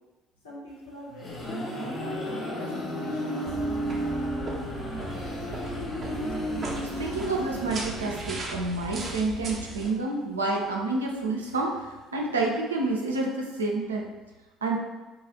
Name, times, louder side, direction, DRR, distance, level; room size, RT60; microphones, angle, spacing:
voice 1, 0.4-3.6, left 1 dB, 75° left, -6 dB, 0.8 m, -45 dB
sound 1, 0.9-8.6, equal, 35° left, 1.0 m, -33 dB
sound 2, 3.5-9.9, right 3 dB, 40° right, 0.6 m, -37 dB
voice 2, 7.0-14.1 14.6-14.8, right 2 dB, 80° right, 0 dB, 0.4 m, -29 dB
2.8 x 2.4 x 4.0 m, 1.2 s
figure-of-eight pair, 55°, 0 cm